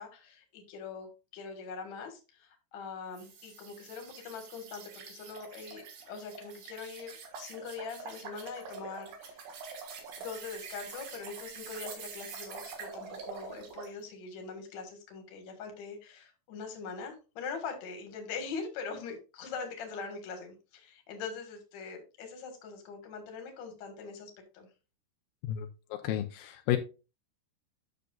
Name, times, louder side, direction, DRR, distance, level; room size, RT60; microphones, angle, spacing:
voice 1, 0.0-9.4 10.2-24.7, left 5 dB, 55° left, 5 dB, 2.2 m, -42 dB
sound 1, 3.1-14.0, right 5 dB, 60° right, 3.0 m, -45 dB
voice 2, 25.4-26.8, left 12 dB, 90° left, 5 dB, 2.1 m, -32 dB
10.0 x 6.6 x 2.4 m, 0.30 s
omnidirectional pair, 5.1 m